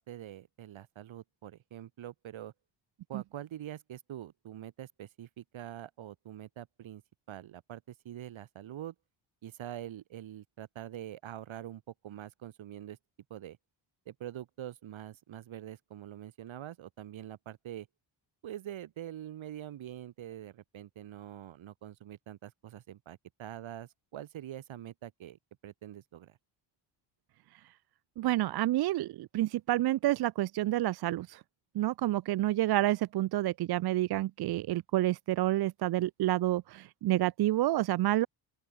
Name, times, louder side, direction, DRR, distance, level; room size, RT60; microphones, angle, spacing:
voice 1, 0.0-2.5 3.1-7.0 7.3-8.9 9.4-13.0 13.3-13.6 14.1-17.9 18.4-26.4, right 11 dB, 75° right, 3.1 m, -45 dB
voice 2, 28.2-31.4 31.7-38.3, right 15 dB, 55° right, 0.5 m, -29 dB
open air
cardioid pair, 90°, 48 cm